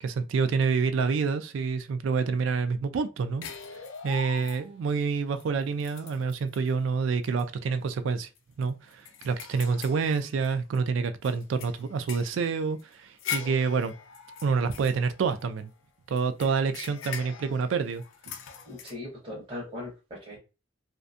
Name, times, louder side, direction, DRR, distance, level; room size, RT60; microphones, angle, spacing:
voice 1, 0.0-3.5 4.0-8.3 8.6-13.9 14.4-15.7 16.1-18.0, right 5 dB, 75° right, 0.3 m, -27 dB
sound 1, 3.4-4.9 5.4-5.5 5.8-6.7 7.2-7.4 7.8-7.9 8.4-10.8 11.2-15.7 16.2-18.9, left 7 dB, 90° left, 0.4 m, -41 dB
voice 2, 18.7-20.4, left 2 dB, 25° right, 0.8 m, -39 dB
2.5 x 2.2 x 2.5 m
head